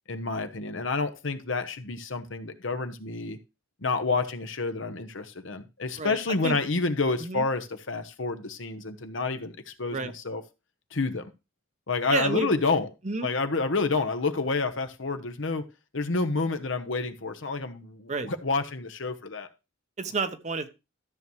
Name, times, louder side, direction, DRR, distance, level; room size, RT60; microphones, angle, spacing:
voice 1, 0.1-3.4 3.8-10.4 10.9-11.2 11.9-12.9 13.2-15.6 15.9-19.5, left 3 dB, 70° left, 8 dB, 1.0 m, -29 dB
voice 2, 6.0-6.6 7.2-7.4 9.9-10.1 12.1-12.5 13.0-13.3 18.1-18.3 20.0-20.7, right 3 dB, 35° right, 10 dB, 0.9 m, -30 dB
13.0 x 7.1 x 3.1 m, 0.27 s
head